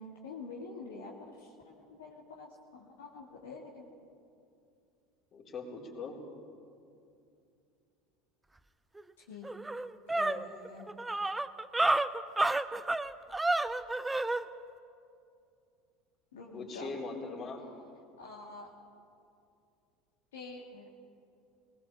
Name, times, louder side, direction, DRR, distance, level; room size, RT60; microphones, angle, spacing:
voice 1, 0.0-3.9 9.3-9.5 10.2-10.9 16.3-16.9 18.2-18.7 20.3-20.9, left 3 dB, 75° left, -2 dB, 2.1 m, -47 dB
voice 2, 5.3-6.2 16.5-17.6, left 3 dB, 40° left, 0 dB, 3.9 m, -41 dB
sound 1, 9.0-9.1 9.4-14.4, right 2 dB, 10° right, 0.8 m, -30 dB
20.5 x 19.5 x 7.2 m, 2.5 s
figure-of-eight pair, 75°, 0 cm